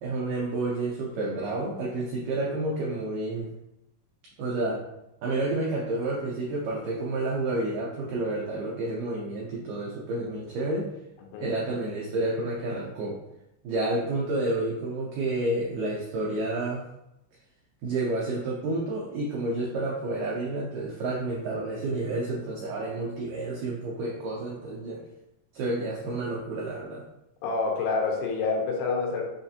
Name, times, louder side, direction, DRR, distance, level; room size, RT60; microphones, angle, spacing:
voice 1, 0.0-3.5 4.4-4.8 5.2-10.9 11.4-13.2 13.6-16.8 17.8-25.0 25.5-27.0, right 2 dB, 85° right, -4 dB, 1.9 m, -30 dB
voice 2, 27.4-29.2, left 4 dB, 85° left, 0 dB, 2.8 m, -27 dB
6.1 x 2.4 x 2.7 m, 0.85 s
omnidirectional pair, 4.6 m